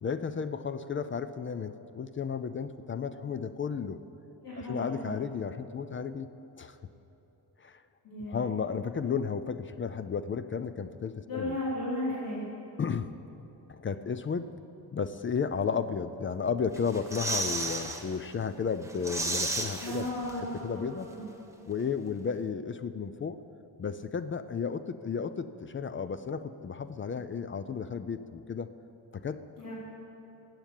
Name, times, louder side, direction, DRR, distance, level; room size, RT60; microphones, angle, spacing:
voice 1, 0.0-4.0 4.6-6.3 6.6-6.8 7.6-7.8 8.3-11.6 12.8-13.1 13.7-14.5 14.9-20.1 20.4-21.1 21.7-23.4 23.8-28.7 29.1-29.4, left 6 dB, 35° left, 12 dB, 0.4 m, -33 dB
voice 2, 4.4-5.1 8.0-8.4 11.3-12.4 19.8-21.2 29.6-29.7, left 1 dB, 60° left, -9 dB, 4.4 m, -35 dB
sound 1, 16.7-18.0 18.4-18.5 18.8-20.6 20.8-20.9, right 2 dB, 10° right, 1.2 m, -33 dB
15.5 x 8.8 x 9.1 m, 3.0 s
wide cardioid pair, 155°, 38 cm